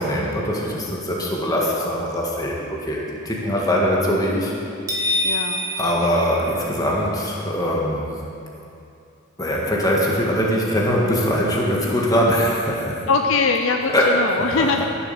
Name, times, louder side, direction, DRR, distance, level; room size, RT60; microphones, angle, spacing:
voice 1, 0.0-4.5 5.8-8.1 9.4-12.9 13.9-14.1, equal, 15° left, -3 dB, 1.7 m, -22 dB
sound 1, 4.9-7.1, left 1 dB, 15° right, 1.4 m, -26 dB
voice 2, 5.2-5.7 13.1-14.8, left 4 dB, 65° left, 4 dB, 0.6 m, -21 dB
14.5 x 7.4 x 6.8 m, 2.6 s
head